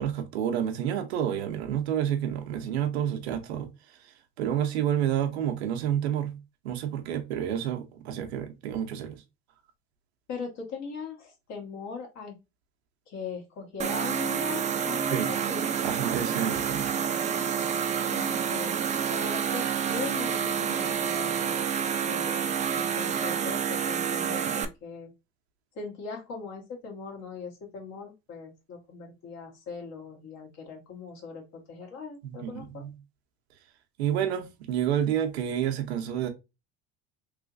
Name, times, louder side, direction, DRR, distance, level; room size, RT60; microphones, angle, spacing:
voice 1, 0.0-6.3 6.6-9.2 15.1-15.3 15.8-16.9 32.2-32.9 34.0-36.3, right 10 dB, 85° right, 0.7 m, -29 dB
voice 2, 10.3-12.3 13.1-15.6 18.1-18.8 19.1-21.7 22.0-25.1 25.7-32.9, left 5 dB, 60° left, 1.5 m, -40 dB
sound 1, 13.8-24.6, right 7 dB, 25° right, 0.4 m, -28 dB
3.2 x 3.0 x 2.5 m
hypercardioid pair, 80°, 31 cm